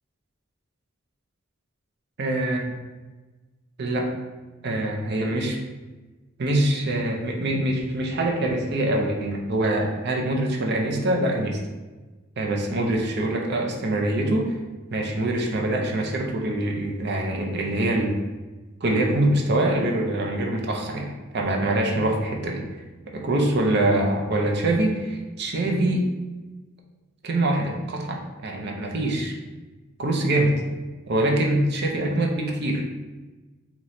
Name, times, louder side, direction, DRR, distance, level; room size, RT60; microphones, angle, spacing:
voice 1, 2.2-2.7 3.8-4.1 4.6-5.6 6.4-11.6 12.4-14.6 14.9-18.2 18.8-22.7 23.1-26.1 27.2-29.3 30.0-30.6 31.1-32.8, right 1 dB, 55° right, 1 dB, 0.6 m, -24 dB
3.1 x 2.9 x 4.2 m, 1.2 s
head